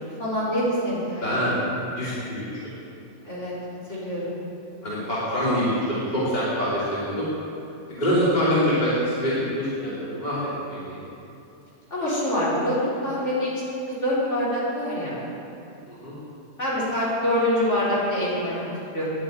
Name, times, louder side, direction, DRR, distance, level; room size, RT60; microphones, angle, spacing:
voice 1, 0.2-1.3 3.2-3.5 3.9-4.4 11.9-15.1 16.6-18.7 18.9-19.1, left 1 dB, 55° left, -9 dB, 4.5 m, -25 dB
voice 2, 1.2-1.6 2.0-2.5 4.8-7.3 7.9-10.3 10.6-11.0 15.9-16.1, equal, 30° left, -9 dB, 3.1 m, -25 dB
10.5 x 10.0 x 9.1 m, 2.7 s
omnidirectional pair, 1.5 m